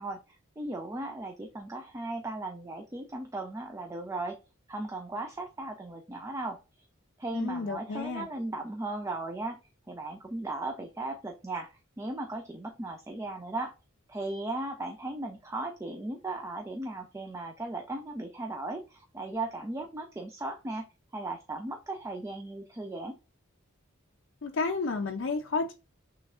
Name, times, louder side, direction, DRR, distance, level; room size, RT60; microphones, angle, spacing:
voice 1, 0.0-4.4 4.7-6.6 7.2-9.6 9.9-13.7 14.1-20.8 21.1-23.2, right 2 dB, 15° right, 0.4 m, -37 dB
voice 2, 7.3-8.3 24.4-25.7, left 4 dB, 55° left, 0.5 m, -31 dB
6.0 x 3.1 x 2.4 m
head